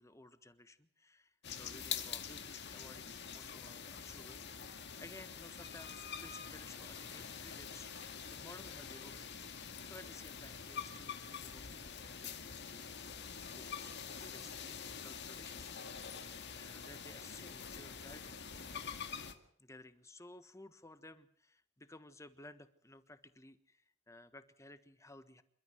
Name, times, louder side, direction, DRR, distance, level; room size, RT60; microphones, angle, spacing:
voice 1, 0.0-4.7 5.0-9.5 9.8-13.2 13.5-16.1 16.5-19.0 19.6-25.4, left 2 dB, 15° left, 11 dB, 1.4 m, -57 dB
sound 1, 1.4-19.3, left 7 dB, 55° left, 1.9 m, -46 dB
28.0 x 13.0 x 7.9 m, 0.65 s
head